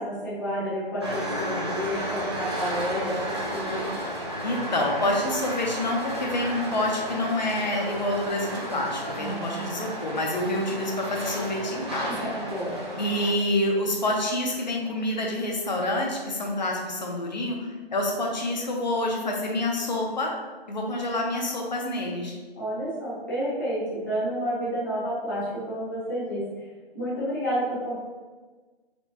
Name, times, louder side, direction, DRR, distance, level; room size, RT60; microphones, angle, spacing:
voice 1, 0.0-3.9 9.1-9.7 12.1-12.8 20.7-20.9 22.6-26.4 26.9-28.0, equal, 20° left, -9 dB, 0.9 m, -30 dB
sound 1, 1.0-13.3, right 1 dB, 25° right, 0.6 m, -33 dB
voice 2, 4.4-12.3 13.0-20.3 20.7-22.4, left 1 dB, 45° left, 0 dB, 0.8 m, -27 dB
4.4 x 3.3 x 2.9 m, 1.3 s
hypercardioid pair, 175°, 30 cm